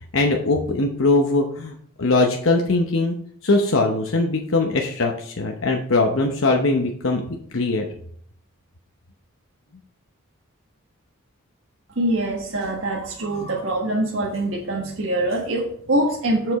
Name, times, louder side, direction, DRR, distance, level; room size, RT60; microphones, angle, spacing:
voice 1, 0.1-3.1 3.4-7.2 7.5-7.9, left 2 dB, 65° left, 2 dB, 0.9 m, -21 dB
voice 2, 11.9-16.5, right 1 dB, 70° right, -2 dB, 1.5 m, -24 dB
7.7 x 6.8 x 4.2 m, 0.63 s
head